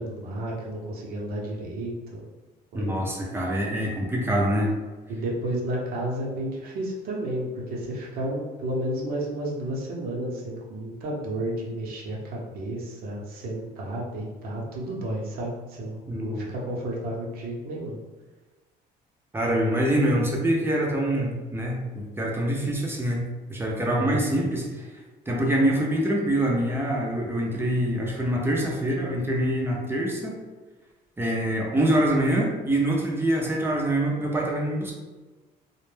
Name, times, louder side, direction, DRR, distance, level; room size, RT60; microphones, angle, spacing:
voice 1, 0.0-2.2 2.7-3.1 5.1-18.0 24.0-24.3, right 1 dB, 65° right, -3 dB, 0.7 m, -32 dB
voice 2, 2.7-4.8 16.1-16.5 19.3-24.9 25.3-30.4 31.2-34.9, right 1 dB, 15° right, -2 dB, 0.5 m, -25 dB
2.1 x 2.0 x 3.2 m, 1.2 s
cardioid pair, 110°, 17 cm